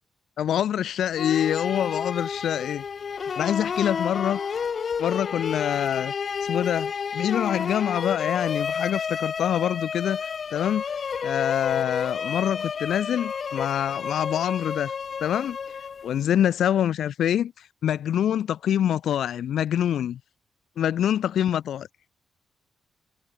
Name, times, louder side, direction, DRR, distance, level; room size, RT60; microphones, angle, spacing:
voice 1, 0.4-2.8 3.4-4.4 5.0-6.1 6.4-10.2 10.5-10.8 11.2-14.9 15.2-15.6 16.0-17.5 17.8-20.2 20.8-21.9, left 10 dB, 75° left, 2.3 m, -25 dB
sound 1, 1.2-16.2, left 6 dB, 40° left, 5.1 m, -31 dB
wide cardioid pair, 180°, 0 cm